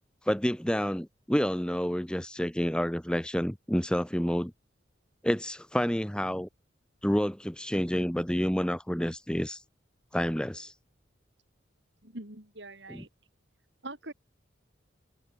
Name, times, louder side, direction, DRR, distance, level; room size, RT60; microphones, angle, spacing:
voice 1, 0.2-4.5 5.2-6.5 7.0-9.6 10.1-10.7 12.9-13.0, equal, 5° left, 1.2 m, -29 dB
voice 2, 12.0-13.1 13.8-14.1, right 2 dB, 65° right, 6.0 m, -43 dB
open air
head